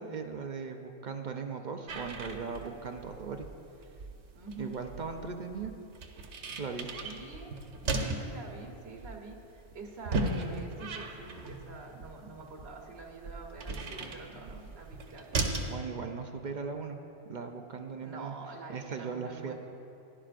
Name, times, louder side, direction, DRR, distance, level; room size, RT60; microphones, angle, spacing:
voice 1, 0.0-3.5 4.6-5.7 6.6-7.1 15.7-17.0 17.3-18.3 18.7-19.5, right 5 dB, 50° right, 4 dB, 0.7 m, -38 dB
sound 1, 1.9-15.7, right 2 dB, 85° right, 1.2 m, -37 dB
voice 2, 4.3-4.8 6.5-6.6 7.0-7.5 8.0-15.5 18.0-19.5, right 3 dB, 65° right, 0 dB, 1.4 m, -46 dB
16.0 x 11.0 x 2.5 m, 2.8 s
omnidirectional pair, 1.1 m